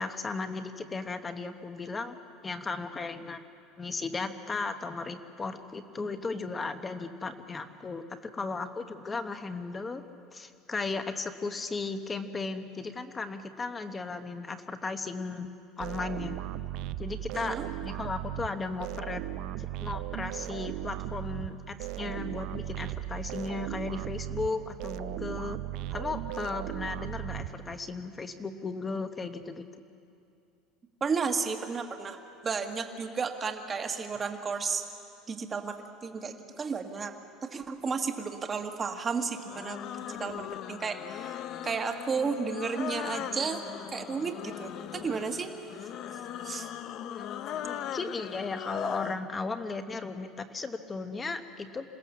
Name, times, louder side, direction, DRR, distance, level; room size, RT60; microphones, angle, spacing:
voice 1, 0.0-2.2 2.4-3.4 3.8-10.0 10.3-15.5 15.8-16.4 17.0-19.2 19.8-25.6 25.9-29.7 47.0-47.3 47.6-51.9, left 3 dB, 15° left, 8 dB, 1.1 m, -36 dB
sound 1, 15.8-28.0, right 14 dB, 60° right, 0.5 m, -37 dB
voice 2, 17.3-17.7 31.0-32.2 32.4-34.8 35.3-41.3 41.6-45.5 46.4-46.7, right 5 dB, 20° right, 5 dB, 1.5 m, -33 dB
sound 2, 39.3-49.2, left 10 dB, 45° left, 0.7 m, -39 dB
27.0 x 16.5 x 7.3 m, 2.5 s
cardioid pair, 150°, 0 cm